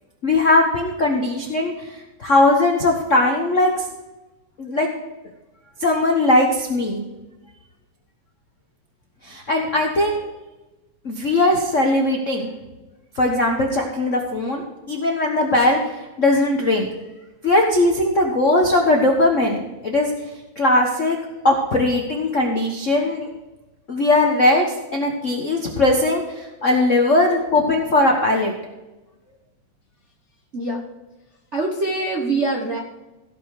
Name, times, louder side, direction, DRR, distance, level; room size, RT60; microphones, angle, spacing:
voice 1, 0.2-3.8 4.6-4.9 5.8-7.0 9.2-10.2 11.0-12.5 13.1-16.9 17.4-20.1 20.6-21.2 21.4-23.3 23.9-24.7 24.9-28.5, left 2 dB, 55° left, 1 dB, 0.8 m, -19 dB
voice 2, 31.5-32.8, right 2 dB, 50° right, -2 dB, 0.8 m, -23 dB
17.0 x 5.9 x 4.8 m, 1.1 s
omnidirectional pair, 3.4 m